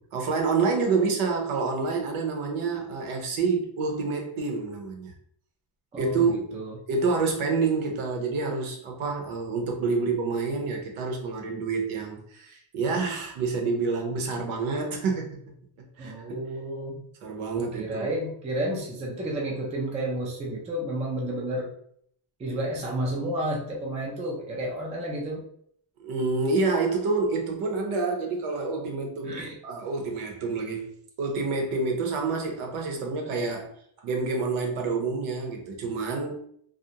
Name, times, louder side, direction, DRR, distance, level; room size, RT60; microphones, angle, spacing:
voice 1, 0.0-5.1 6.0-6.6 6.9-15.4 16.0-16.4 17.2-18.1 26.0-30.9 31.2-33.7 34.0-36.4, right 4 dB, 80° right, 2 dB, 0.8 m, -28 dB
voice 2, 5.9-6.8 16.0-17.0 17.5-21.7 22.4-25.4 29.2-29.6, right 1 dB, 15° right, -2 dB, 0.3 m, -31 dB
2.5 x 2.0 x 2.8 m, 0.66 s
cardioid pair, 165°, 48 cm